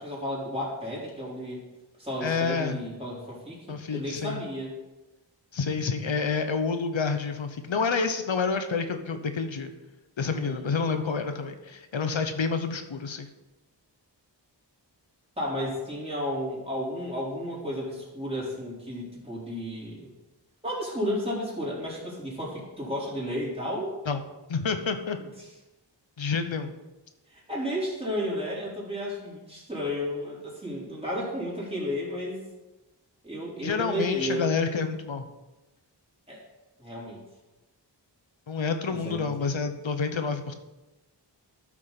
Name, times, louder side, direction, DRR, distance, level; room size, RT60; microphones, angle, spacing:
voice 1, 0.0-1.6 2.0-4.7 10.3-10.7 15.4-20.1 20.6-23.9 25.4-25.5 27.3-32.4 33.2-34.5 36.3-36.4 36.8-37.2 38.9-39.6, equal, 15° right, -6 dB, 4.0 m, -33 dB
voice 2, 2.2-2.8 3.7-4.4 5.5-9.7 10.2-13.3 24.1-24.2 24.5-25.2 26.2-26.7 33.6-35.3 38.5-40.5, left 5 dB, 85° left, 8 dB, 0.9 m, -28 dB
13.0 x 6.1 x 4.1 m, 1.1 s
wide cardioid pair, 65°, 44 cm